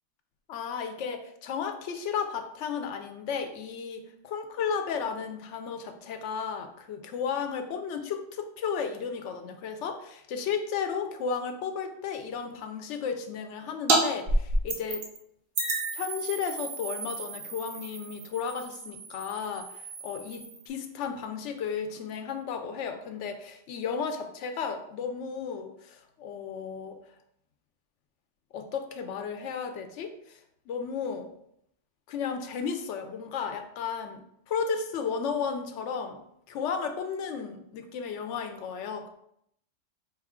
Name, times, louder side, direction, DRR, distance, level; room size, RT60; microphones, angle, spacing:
voice 1, 0.5-15.0 15.9-27.0 28.5-30.4 30.7-31.3 32.1-34.2 34.5-36.2 36.5-39.1, left 6 dB, 85° left, 6 dB, 0.9 m, -34 dB
sound 1, 13.9-14.0 14.3-15.2 15.6-20.7, right 2 dB, 60° right, 0.9 m, -30 dB
4.7 x 2.3 x 3.5 m, 0.73 s
omnidirectional pair, 1.2 m